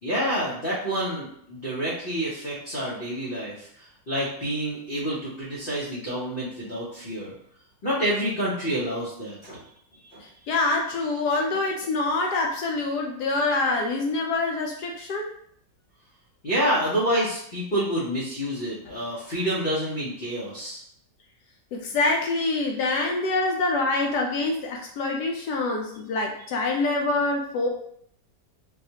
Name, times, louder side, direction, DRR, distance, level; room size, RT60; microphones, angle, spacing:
voice 1, 0.0-7.3 7.8-9.6 10.0-10.2 16.4-20.8, equal, 45° left, -8 dB, 0.7 m, -28 dB
voice 2, 10.5-15.3 21.7-27.7, left 3 dB, 75° left, 1 dB, 1.0 m, -25 dB
4.0 x 2.3 x 2.7 m, 0.67 s
omnidirectional pair, 1.9 m